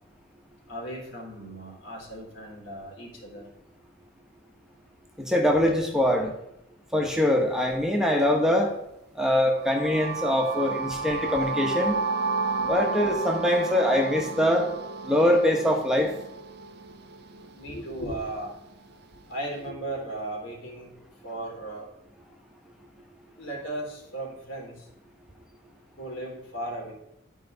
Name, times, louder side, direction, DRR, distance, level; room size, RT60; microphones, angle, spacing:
voice 1, 0.7-3.5 17.5-18.5 19.3-20.9 21.2-21.9 23.4-24.9 26.0-26.9, right 1 dB, 85° left, -3 dB, 3.2 m, -36 dB
voice 2, 5.2-6.3 6.9-8.7 9.2-12.0 12.7-14.7 15.0-16.1, left 1 dB, 5° right, 1 dB, 1.0 m, -23 dB
sound 1, 9.6-17.5, right 4 dB, 55° right, 0.5 m, -32 dB
12.0 x 4.7 x 3.9 m, 0.82 s
head